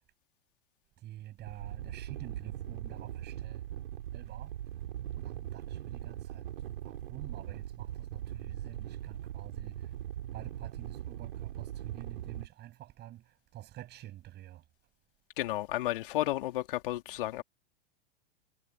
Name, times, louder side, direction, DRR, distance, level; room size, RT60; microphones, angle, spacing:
voice 1, 1.0-3.6 4.1-4.5 5.2-6.5 6.8-9.9 10.3-14.6, right 14 dB, 35° right, 7.4 m, -48 dB
sound 1, 1.4-12.5, right 11 dB, 65° right, 6.8 m, -40 dB
voice 2, 15.4-17.4, left 15 dB, 55° left, 3.2 m, -32 dB
figure-of-eight pair, 100°, 31 cm